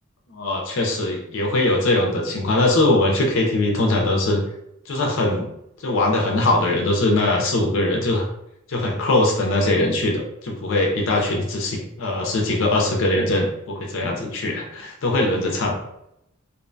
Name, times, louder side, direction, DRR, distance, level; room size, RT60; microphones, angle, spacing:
voice 1, 0.3-4.4 4.9-5.5 5.8-8.3 8.7-15.7, left 2 dB, 65° left, 0 dB, 0.5 m, -21 dB
2.6 x 2.1 x 2.5 m, 0.80 s
head